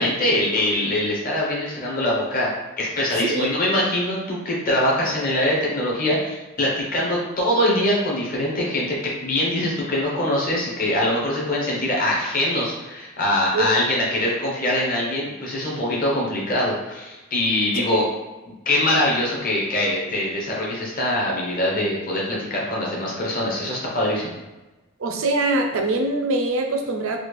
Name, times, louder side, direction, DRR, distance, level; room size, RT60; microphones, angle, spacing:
voice 1, 0.0-2.5 2.8-9.0 9.2-18.0 18.6-24.4, left 1 dB, 45° left, -4 dB, 1.0 m, -23 dB
voice 2, 3.1-3.5 13.5-13.7 17.8-17.9 25.0-27.2, right 2 dB, 75° right, 4 dB, 0.5 m, -23 dB
4.0 x 2.4 x 3.2 m, 1.1 s
head